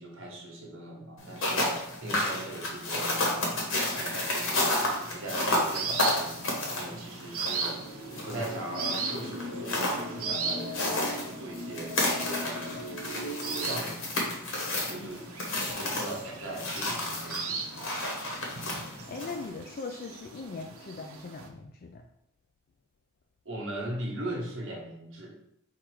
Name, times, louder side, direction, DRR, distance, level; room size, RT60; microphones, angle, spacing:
voice 1, 0.0-4.7 5.1-7.8 8.2-12.9 13.6-14.1 14.9-15.2 15.6-17.6 23.4-25.4, right 1 dB, 60° right, 0 dB, 1.1 m, -39 dB
sound 1, 1.2-19.5, left 1 dB, 65° left, 1.2 m, -32 dB
sound 2, 3.9-21.5, right 5 dB, 80° right, 0.6 m, -39 dB
sound 3, 7.6-13.7, left 1 dB, 20° right, 0.8 m, -40 dB
voice 2, 15.5-15.9 19.1-22.0, left 4 dB, 45° left, 4 dB, 0.3 m, -40 dB
4.4 x 2.5 x 4.7 m, 0.76 s
head